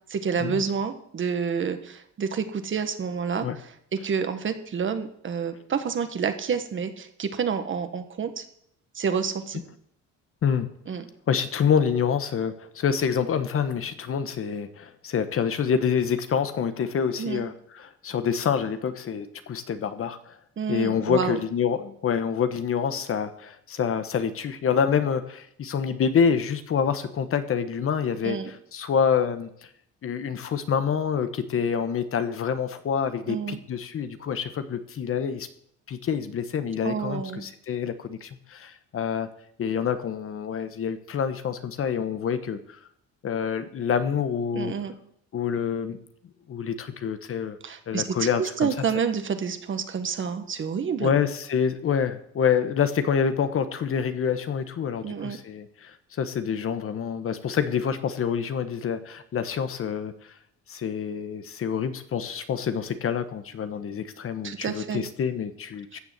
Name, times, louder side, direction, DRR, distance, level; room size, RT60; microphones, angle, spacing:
voice 1, 0.1-3.5 3.9-8.4 8.9-9.6 10.9-11.1 17.2-17.4 20.6-21.4 28.2-28.5 33.3-33.6 36.8-37.4 44.5-44.9 47.6-51.1 55.0-55.4 64.4-65.0 65.9-66.0, right 6 dB, 40° right, 8 dB, 1.6 m, -29 dB
voice 2, 11.3-20.4 20.7-29.5 30.0-35.5 35.9-39.3 39.6-42.8 43.2-44.8 45.3-46.0 46.5-47.6 47.9-48.7 51.0-60.3 60.7-66.0, left 7 dB, 45° left, 10 dB, 1.1 m, -27 dB
14.5 x 6.9 x 8.0 m, 0.70 s
cardioid pair, 120°, 31 cm